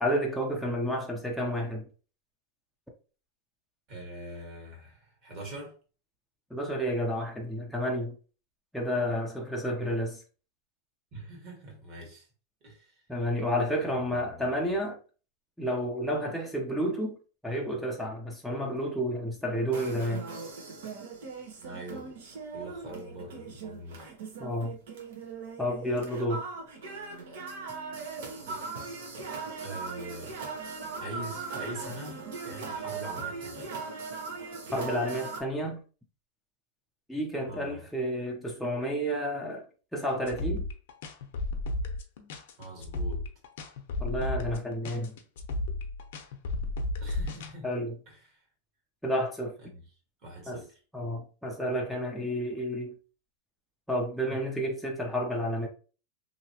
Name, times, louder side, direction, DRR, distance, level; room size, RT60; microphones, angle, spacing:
voice 1, 0.0-1.9 6.5-8.2 8.7-10.2 13.1-15.0 15.6-17.2 17.4-20.3 24.4-24.8 25.6-26.5 34.7-35.8 37.1-39.7 39.9-40.7 44.0-45.1 47.6-48.0 49.0-49.6 50.5-50.6 50.9-53.0 53.9-55.7, equal, ahead, 0.5 m, -30 dB
voice 2, 3.9-5.7 11.1-12.3 12.6-13.0 13.8-14.8 21.6-22.2 22.5-24.1 28.4-28.6 29.6-30.4 31.0-33.7 37.5-37.9 42.6-43.2 47.0-47.7 48.1-48.2 49.7-49.8 50.2-50.8, right 1 dB, 40° right, 1.4 m, -43 dB
sound 1, 19.7-35.4, right 4 dB, 75° right, 0.9 m, -39 dB
sound 2, 40.2-47.5, left 2 dB, 70° left, 0.6 m, -33 dB
2.8 x 2.7 x 2.8 m
supercardioid pair, 150°, 0 cm